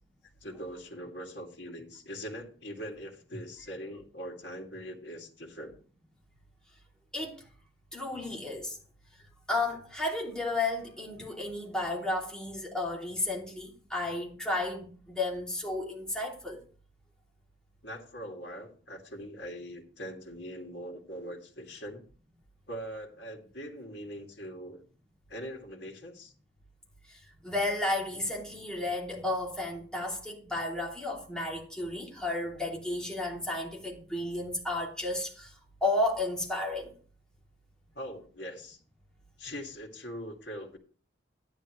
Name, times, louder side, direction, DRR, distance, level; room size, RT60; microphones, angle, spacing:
voice 1, 0.4-5.7 17.8-22.0 22.7-24.8 25.3-26.3 37.9-38.8 39.4-40.8, equal, 65° left, 2.4 m, -42 dB
voice 2, 7.1-7.4 7.9-8.8 9.5-16.6 27.1-35.5 35.8-36.9, left 2 dB, 5° left, 2.9 m, -33 dB
12.0 x 10.5 x 3.2 m
head